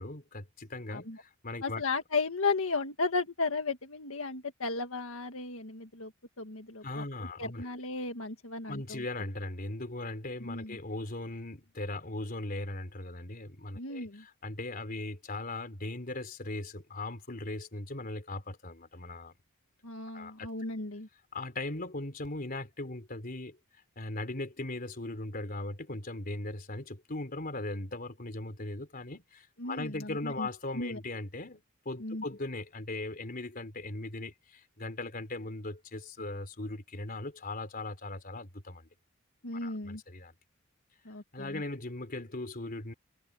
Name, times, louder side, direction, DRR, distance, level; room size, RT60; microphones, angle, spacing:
voice 1, 0.0-1.8 6.8-7.7 8.7-19.3 20.1-20.5 21.3-23.6 24.0-38.9 39.5-40.3 41.3-42.9, left 2 dB, 45° left, 3.9 m, -39 dB
voice 2, 0.9-1.2 1.6-6.1 6.4-7.0 7.4-9.0 10.4-10.8 13.8-14.2 19.8-21.1 29.6-30.5 30.8-31.0 32.0-32.2 39.4-40.0 41.1-41.6, left 3 dB, 80° left, 1.8 m, -35 dB
head